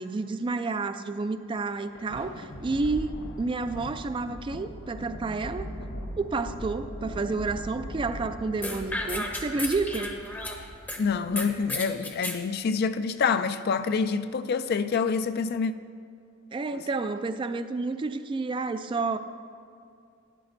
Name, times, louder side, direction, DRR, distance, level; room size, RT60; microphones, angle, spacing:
voice 1, 0.0-5.7 6.2-10.2 16.5-19.2, right 3 dB, 25° right, 0.3 m, -30 dB
Thunder, 1.7-12.3, equal, 80° left, 0.8 m, -40 dB
sound 1, 8.6-11.0 11.4-12.4, left 1 dB, 10° left, 0.7 m, -33 dB
voice 2, 11.0-15.7 16.7-16.8, left 5 dB, 50° left, 0.4 m, -27 dB
12.0 x 10.5 x 2.6 m
head